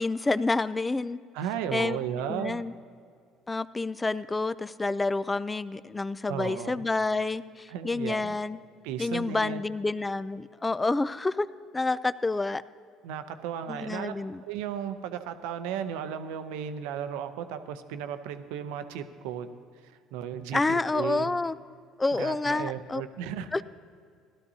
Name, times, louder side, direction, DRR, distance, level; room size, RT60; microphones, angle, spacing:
voice 1, 0.0-1.2 1.7-2.0 2.3-2.7 3.5-8.6 9.0-11.5 11.7-12.6 13.7-14.4 20.5-21.5 22.0-23.0 23.5-23.6, left 3 dB, 20° left, 16 dB, 0.4 m, -28 dB
voice 2, 1.3-2.6 6.3-6.8 7.7-8.4 8.8-9.6 13.0-14.1 14.4-21.3 22.2-23.5, right 9 dB, 75° right, 9 dB, 0.6 m, -35 dB
16.5 x 12.5 x 2.8 m, 2.2 s
hypercardioid pair, 65°, 0 cm